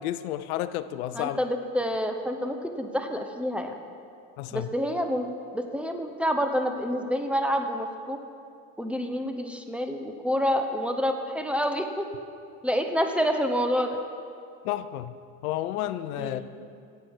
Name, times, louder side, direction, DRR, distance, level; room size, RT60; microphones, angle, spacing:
voice 1, 0.0-1.4 4.4-4.7 14.6-15.2 15.4-16.4, left 13 dB, 85° left, 13 dB, 0.6 m, -31 dB
voice 2, 1.1-3.7 4.5-5.3 5.5-8.2 8.8-12.1 12.6-14.0 16.2-16.4, equal, 5° right, 5 dB, 1.0 m, -28 dB
15.5 x 7.8 x 4.8 m, 2.3 s
supercardioid pair, 100°, 42 cm